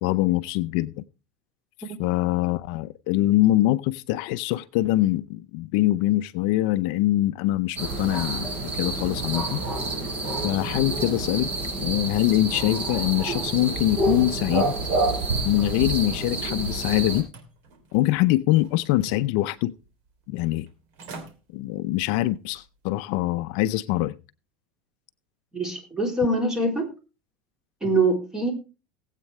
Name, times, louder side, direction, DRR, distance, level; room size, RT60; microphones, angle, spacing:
voice 1, 0.0-1.0 2.0-9.6 10.4-11.5 11.8-14.8 15.4-17.3 17.9-19.7 20.3-20.7 21.5-24.1, left 16 dB, 60° left, 0.6 m, -23 dB
sound 1, 7.8-17.2, right 2 dB, 30° right, 6.1 m, -28 dB
sound 2, 14.9-16.9 17.3-18.2 18.6-19.4 19.8-19.9 20.7-20.8 21.0-21.3 21.8-22.0 22.5-22.6, right 3 dB, 55° right, 3.0 m, -35 dB
voice 2, 25.5-26.9 27.8-28.5, right 2 dB, 10° right, 3.5 m, -24 dB
19.0 x 8.3 x 3.2 m
supercardioid pair, 150°, 5 cm